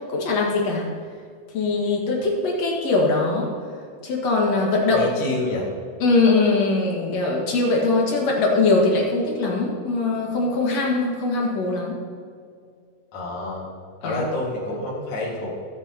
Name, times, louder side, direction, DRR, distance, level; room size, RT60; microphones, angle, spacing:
voice 1, 0.1-0.9 1.5-3.6 4.0-5.1 6.0-12.0 14.0-14.2, left 3 dB, 55° left, -1 dB, 2.7 m, -21 dB
voice 2, 4.9-5.7 13.1-13.7 14.0-15.6, left 2 dB, 75° left, -5 dB, 3.6 m, -28 dB
22.5 x 8.1 x 2.9 m, 2.2 s
omnidirectional pair, 3.8 m